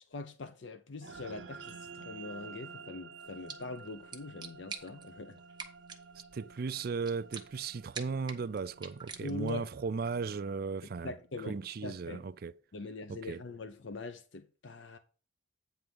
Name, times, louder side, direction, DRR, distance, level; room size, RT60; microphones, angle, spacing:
voice 1, 0.1-5.4 9.2-9.7 11.0-12.2 12.7-15.0, left 3 dB, 70° left, 0.7 m, -43 dB
sound 1, 1.0-11.6, right 5 dB, 75° right, 0.7 m, -52 dB
sound 2, 3.2-9.7, right 5 dB, 25° right, 1.2 m, -48 dB
voice 2, 6.3-11.1 11.5-12.5 13.1-13.4, right 5 dB, 50° right, 0.4 m, -36 dB
9.2 x 3.5 x 6.8 m
head